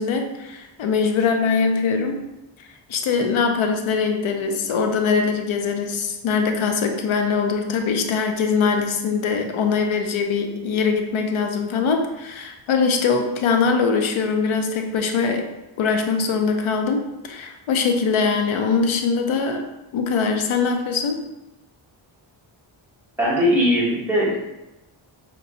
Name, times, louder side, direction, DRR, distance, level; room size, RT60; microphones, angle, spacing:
voice 1, 0.0-2.3 2.6-15.5 15.8-19.6 19.9-21.3, left 5 dB, 85° left, 4 dB, 0.7 m, -22 dB
voice 2, 23.2-24.3, equal, 5° right, -7 dB, 1.2 m, -19 dB
5.3 x 3.0 x 2.6 m, 0.97 s
wide cardioid pair, 155°, 47 cm